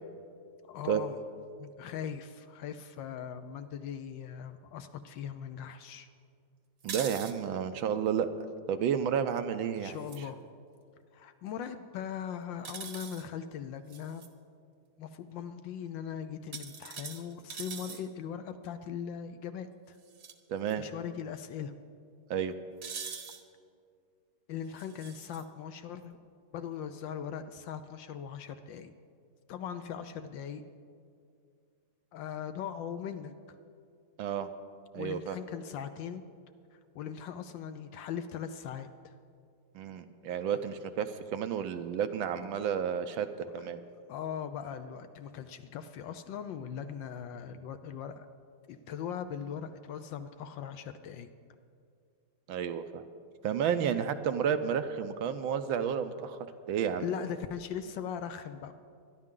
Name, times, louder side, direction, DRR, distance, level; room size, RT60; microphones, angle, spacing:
voice 1, 0.6-1.2 1.6-6.1 9.8-10.4 11.1-14.3 15.0-19.7 20.8-21.7 24.5-26.2 26.5-28.9 29.5-30.6 32.1-33.3 34.9-36.2 36.7-39.1 42.5-42.6 43.4-43.6 44.1-48.3 48.7-51.3 57.0-58.7, left 8 dB, 75° left, 9 dB, 1.2 m, -40 dB
sound 1, 6.8-7.3 9.9-10.2 12.6-13.2 13.9-14.3 16.5-18.0 20.1-20.3 20.7-20.8 22.8-23.4 24.8-25.4, right 6 dB, 50° right, 1.2 m, -42 dB
voice 2, 6.8-8.3 8.7-10.0 20.5-20.8 22.3-22.5 34.2-34.5 34.9-35.4 39.7-43.3 43.5-43.8 52.5-53.0 53.4-56.4 56.7-57.1, right 8 dB, 75° right, 9 dB, 1.4 m, -31 dB
24.0 x 10.5 x 3.8 m, 2.3 s
omnidirectional pair, 2.3 m